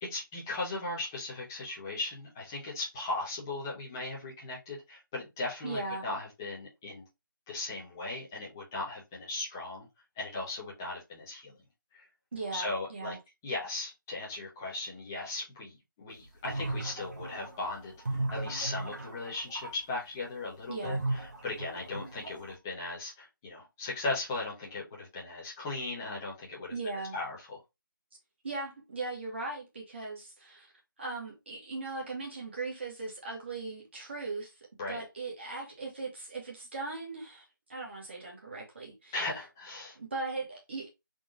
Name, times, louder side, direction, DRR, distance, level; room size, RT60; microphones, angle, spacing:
voice 1, 0.0-7.0 7.5-9.9 10.2-11.5 11.9-12.1 12.5-13.2 13.4-17.9 18.3-26.7 27.1-27.6 34.8-35.0 39.1-40.0, left 2 dB, 10° left, 0.6 m, -37 dB
voice 2, 5.6-6.1 12.3-13.2 20.7-21.0 26.7-27.2 28.4-30.7 31.0-34.5 34.9-39.1 39.9-40.9, right 3 dB, 30° right, 1.0 m, -38 dB
sound 1, 16.2-19.7 20.8-22.5, right 2 dB, 55° right, 1.1 m, -36 dB
3.8 x 2.4 x 3.6 m
figure-of-eight pair, 170°, 11 cm